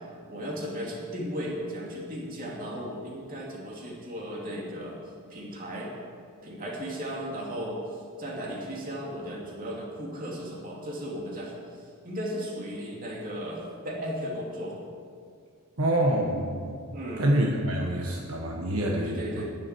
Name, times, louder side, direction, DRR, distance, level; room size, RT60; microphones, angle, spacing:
voice 1, 0.3-5.0 5.3-5.9 6.4-7.8 8.2-14.8 16.9-17.4 19.0-19.5, equal, 40° right, -3 dB, 2.6 m, -36 dB
voice 2, 15.8-19.5, right 1 dB, 70° right, -1 dB, 1.4 m, -27 dB
11.0 x 7.4 x 9.6 m, 2.2 s
head